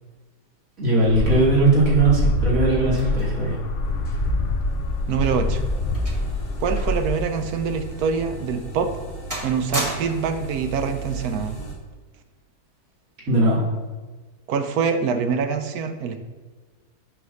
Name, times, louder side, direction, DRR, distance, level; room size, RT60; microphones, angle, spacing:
voice 1, 0.8-3.6 13.3-13.6, right 2 dB, 55° right, -8 dB, 2.9 m, -19 dB
sound 1, 1.1-7.1, left 2 dB, 55° left, 1.1 m, -25 dB
sound 2, 1.8-11.7, right 3 dB, 70° left, 2.0 m, -36 dB
sound 3, 5.0-7.1 7.4-7.6 8.2-8.3 8.8-9.1 9.3-10.4 11.3-11.6, right 1 dB, 20° right, 1.4 m, -33 dB
voice 2, 5.1-5.6 6.6-8.9 9.4-11.6 14.5-16.2, right 6 dB, 75° right, 7 dB, 1.1 m, -25 dB
8.1 x 3.1 x 6.2 m, 1.4 s
omnidirectional pair, 1.7 m